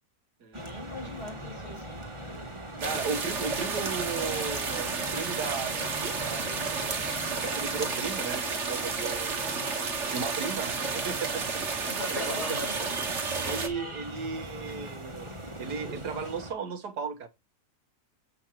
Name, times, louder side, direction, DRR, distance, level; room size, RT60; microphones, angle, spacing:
voice 1, 0.5-2.0 9.4-9.7 11.8-12.8, left 1 dB, 85° left, 6.4 m, -40 dB
sound 1, 0.5-16.5, right 1 dB, 20° right, 1.9 m, -41 dB
voice 2, 2.6-6.7 7.0-9.4 10.1-13.0 13.4-15.3 15.6-17.3, right 5 dB, 85° right, 2.0 m, -36 dB
sound 2, 2.8-13.7, right 4 dB, 50° right, 1.8 m, -32 dB
7.9 x 6.6 x 4.5 m
omnidirectional pair, 1.7 m